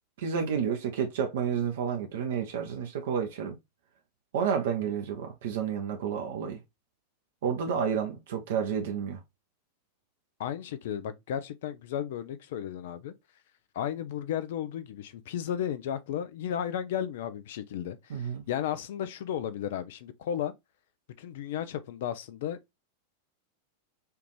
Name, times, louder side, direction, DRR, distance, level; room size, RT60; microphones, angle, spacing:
voice 1, 0.2-3.6 4.3-6.6 7.4-9.2 18.1-18.4, right 7 dB, 55° right, 0.6 m, -30 dB
voice 2, 10.4-13.1 13.7-20.5 21.2-22.8, left 10 dB, 55° left, 0.5 m, -34 dB
4.4 x 2.5 x 3.0 m
figure-of-eight pair, 90°, 0 cm